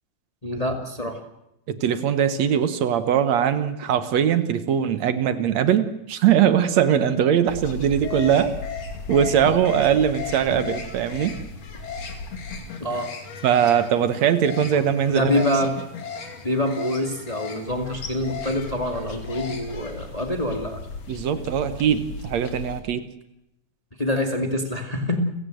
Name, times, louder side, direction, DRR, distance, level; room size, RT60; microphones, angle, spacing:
voice 1, 0.4-1.2 9.4-9.6 12.8-13.1 15.1-15.8 16.4-20.8 24.0-25.2, left 1 dB, 15° left, 5 dB, 1.9 m, -25 dB
voice 2, 1.7-8.5 9.1-11.4 13.4-15.4 21.1-23.0, right 9 dB, 70° right, 12 dB, 2.3 m, -21 dB
sound 1, 7.5-22.8, left 5 dB, 60° left, 3.6 m, -36 dB
30.0 x 16.5 x 7.8 m, 0.88 s
omnidirectional pair, 3.3 m